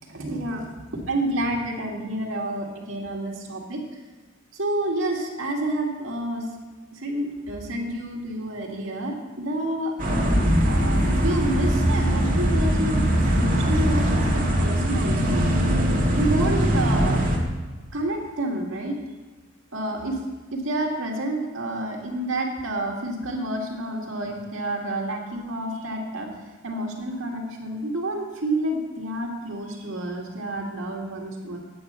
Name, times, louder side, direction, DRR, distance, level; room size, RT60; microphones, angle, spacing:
voice 1, 0.1-3.8 4.6-6.5 6.9-9.9 10.7-15.4 16.1-17.3 17.9-19.0 19.7-20.2 20.5-26.3 26.6-31.6, right 1 dB, 75° right, -1 dB, 2.1 m, -29 dB
sound 1, 10.0-17.4, equal, 40° right, 1.9 m, -21 dB
9.2 x 8.7 x 5.6 m, 1.3 s
head